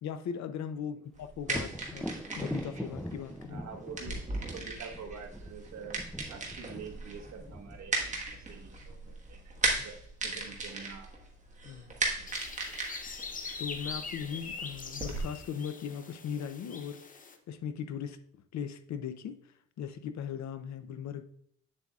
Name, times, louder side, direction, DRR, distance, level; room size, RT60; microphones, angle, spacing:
voice 1, 0.0-3.7 4.1-4.2 9.8-9.9 11.6-12.0 13.6-18.2 18.5-19.4 19.8-21.2, left 8 dB, 60° left, 10 dB, 0.6 m, -39 dB
sound 1, 1.1-15.2, right 3 dB, 25° right, 1.4 m, -37 dB
Thunder, 1.4-9.1 12.8-12.9 13.3-14.2, equal, ahead, 0.4 m, -42 dB
voice 2, 3.5-11.1, right 5 dB, 60° right, 3 dB, 1.4 m, -47 dB
sound 2, 12.3-17.4, left 4 dB, 25° left, 0.7 m, -42 dB
8.5 x 7.5 x 2.4 m, 0.67 s
cardioid pair, 150°, 31 cm